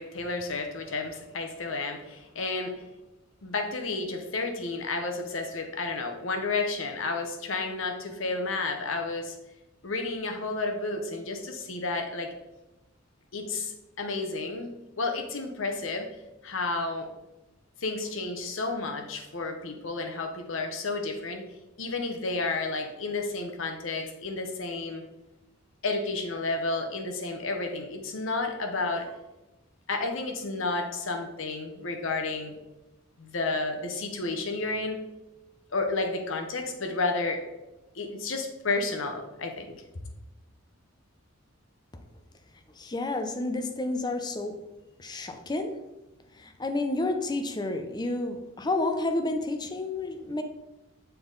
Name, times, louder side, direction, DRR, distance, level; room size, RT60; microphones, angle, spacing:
voice 1, 0.0-2.8 3.4-9.4 9.8-12.3 13.3-16.1 16.4-17.1 17.8-21.4 21.8-25.0 25.8-29.1 29.9-32.6 33.2-35.0 35.7-37.4 37.9-39.7, left 3 dB, 70° left, 4 dB, 0.9 m, -31 dB
voice 2, 42.8-44.6 45.0-45.7 46.4-50.4, left 2 dB, 20° left, 7 dB, 0.5 m, -30 dB
6.8 x 3.9 x 3.9 m, 1.0 s
head